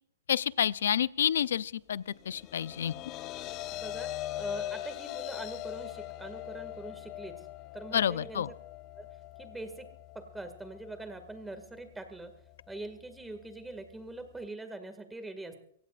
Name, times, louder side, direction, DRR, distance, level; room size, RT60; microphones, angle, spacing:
voice 1, 0.3-2.9 7.9-8.5, left 9 dB, 75° left, 18 dB, 0.5 m, -29 dB
sound 1, 2.1-14.5, left 14 dB, 30° left, 0.6 m, -42 dB
voice 2, 3.7-7.5 7.7-8.4 9.0-9.1 9.4-9.9 10.1-12.3 12.7-15.6, right 2 dB, 5° right, 8 dB, 2.1 m, -43 dB
24.0 x 17.0 x 2.5 m, 0.65 s
hypercardioid pair, 135°, 0 cm